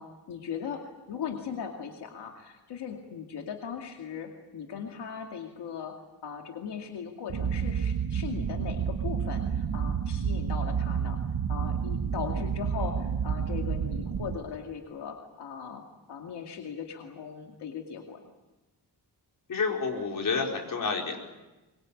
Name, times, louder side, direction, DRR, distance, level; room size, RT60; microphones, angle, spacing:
voice 1, 0.0-6.0 6.2-11.2 11.5-18.2, left 7 dB, 90° left, 2 dB, 2.4 m, -39 dB
sound 1, 7.3-14.4, right 7 dB, 50° right, 1.4 m, -30 dB
voice 2, 19.5-21.2, left 4 dB, 55° left, 1 dB, 4.6 m, -29 dB
24.0 x 22.0 x 8.6 m, 1.1 s
wide cardioid pair, 150°, 39 cm